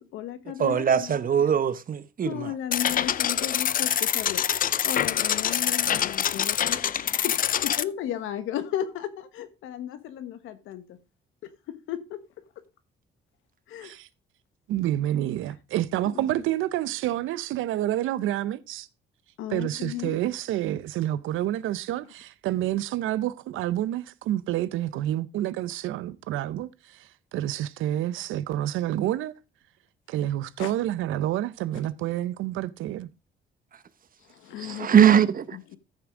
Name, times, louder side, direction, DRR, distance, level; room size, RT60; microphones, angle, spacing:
voice 1, 0.0-1.2 2.2-4.4 4.8-7.4 7.6-11.0 11.7-12.2 13.7-13.9 16.1-16.3 19.4-20.1 30.6-30.7 34.3-34.9 35.5-35.8, left 11 dB, 90° left, 1.3 m, -34 dB
voice 2, 0.6-2.5 34.6-35.6, right 8 dB, 45° right, 0.9 m, -21 dB
sound 1, 2.7-7.8, left 9 dB, 45° left, 0.5 m, -25 dB
voice 3, 14.7-18.9 19.5-26.7 27.3-29.3 30.1-33.1, right 13 dB, 90° right, 0.6 m, -28 dB
14.0 x 6.1 x 3.7 m
cardioid pair, 90°, 20 cm